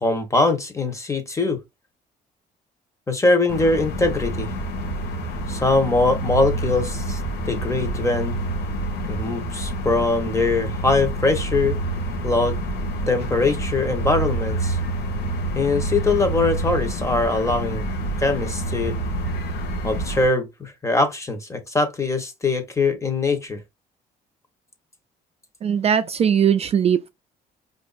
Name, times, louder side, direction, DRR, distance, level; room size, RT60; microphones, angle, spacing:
voice 1, 0.0-1.6 3.1-4.5 5.5-7.2 7.5-8.4 9.1-11.8 12.2-12.6 13.1-14.8 15.5-17.8 18.2-18.9 19.8-23.6, left 3 dB, 15° left, 1.1 m, -22 dB
sound 1, 3.5-20.3, right 1 dB, 85° left, 1.0 m, -27 dB
voice 2, 25.6-27.1, right 8 dB, 40° right, 0.4 m, -19 dB
4.8 x 2.6 x 2.4 m
cardioid pair, 110°, 17 cm